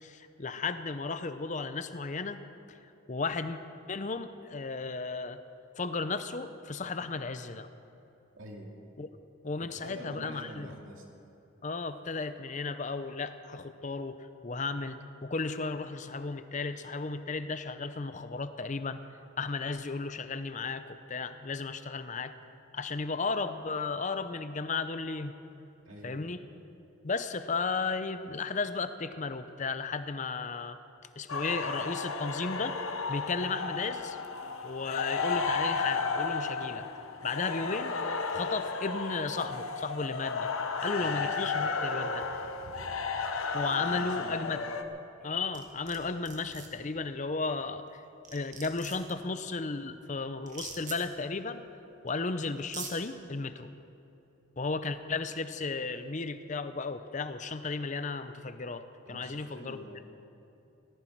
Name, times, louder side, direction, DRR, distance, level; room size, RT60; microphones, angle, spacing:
voice 1, 0.0-2.4 2.7-2.8 3.1-3.6 3.9-5.4 5.8-7.7 9.0-9.1 9.4-10.7 11.6-14.2 14.4-19.0 19.4-22.3 22.7-25.3 26.0-26.4 27.0-30.8 31.2-32.8 33.1-34.2 34.6-36.9 37.2-38.0 38.3-40.5 40.8-42.3 43.5-44.6 45.2-48.0 48.3-51.6 52.0-53.7 54.6-59.8, left 4 dB, 35° left, 11 dB, 0.6 m, -34 dB
voice 2, 8.4-8.7 9.6-11.0 25.8-26.3 41.0-41.1 43.9-44.6 59.1-60.1, equal, 70° right, 0 dB, 2.5 m, -47 dB
sound 1, 31.3-44.8, left 4 dB, 85° left, 1.0 m, -33 dB
sound 2, 45.5-46.0 46.2-46.7 47.9-48.0 48.2-49.1 50.5-51.0 52.1-52.2 52.6-52.9, right 5 dB, 35° right, 1.8 m, -42 dB
18.5 x 15.0 x 4.6 m, 2.8 s
head